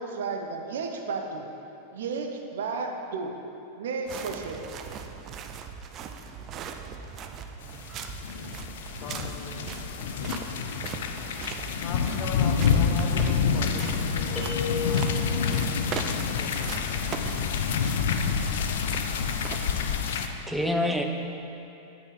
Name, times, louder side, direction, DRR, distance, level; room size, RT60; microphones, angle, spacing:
voice 1, 0.0-1.5 1.9-3.3 3.8-4.7, right 4 dB, 60° right, 3 dB, 0.8 m, -33 dB
sound 1, 4.1-20.1, right 6 dB, 35° right, 0.5 m, -40 dB
sound 2, 7.7-20.3, left 6 dB, 60° left, 0.5 m, -27 dB
voice 2, 8.9-9.9 11.6-14.5 14.8-16.0 16.4-16.8, left 5 dB, 40° left, 3 dB, 1.0 m, -40 dB
sound 3, 14.4-15.5, left 4 dB, 20° left, 1.3 m, -33 dB
voice 3, 20.1-21.0, left 1 dB, ahead, 2 dB, 0.7 m, -28 dB
9.8 x 8.2 x 4.0 m, 2.8 s
figure-of-eight pair, 90°, 0 cm